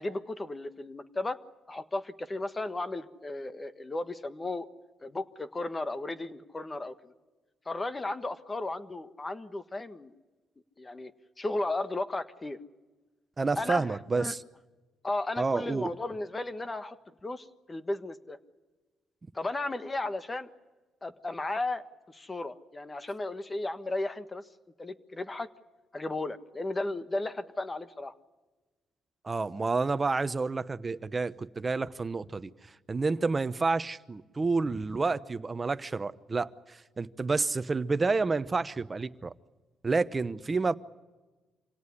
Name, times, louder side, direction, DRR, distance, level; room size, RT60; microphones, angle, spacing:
voice 1, 0.0-1.4 1.7-4.7 5.0-7.1 7.6-10.1 10.8-11.1 11.4-12.6 13.6-13.9 14.1-14.3 15.0-18.4 19.3-20.5 21.0-21.8 22.1-24.4 24.8-25.5 25.9-28.1, left 2 dB, 25° left, 1.5 m, -34 dB
voice 2, 13.4-14.4 15.4-15.9 29.2-32.5 32.9-39.3 39.8-40.8, right 3 dB, 25° right, 1.0 m, -29 dB
26.5 x 17.5 x 9.9 m
cardioid pair, 90°, 0 cm